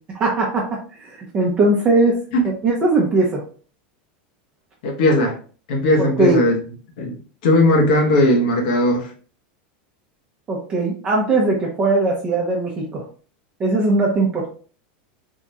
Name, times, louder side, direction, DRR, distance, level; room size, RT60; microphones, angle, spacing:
voice 1, 0.1-2.2 2.6-3.4 6.0-6.4 10.5-13.0 13.6-14.5, right 2 dB, 20° right, -2 dB, 0.8 m, -19 dB
voice 2, 4.8-5.4 5.7-6.6 7.0-9.1, left 1 dB, 65° left, 1 dB, 1.0 m, -17 dB
3.6 x 2.4 x 4.2 m, 0.41 s
supercardioid pair, 155°, 5 cm